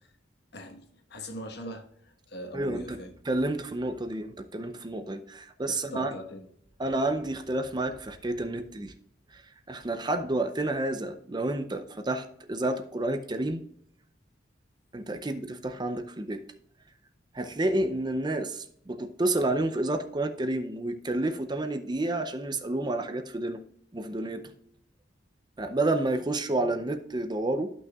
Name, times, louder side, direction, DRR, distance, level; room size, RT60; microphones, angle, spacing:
voice 1, 1.1-3.1 5.7-6.4, equal, 60° left, 1.3 m, -40 dB
voice 2, 2.5-6.1 6.8-8.9 9.3-9.4 9.7-13.6 14.9-16.4 17.3-23.6 23.9-24.5 25.6-27.7, right 2 dB, 25° right, 0.6 m, -30 dB
13.5 x 6.0 x 2.4 m
head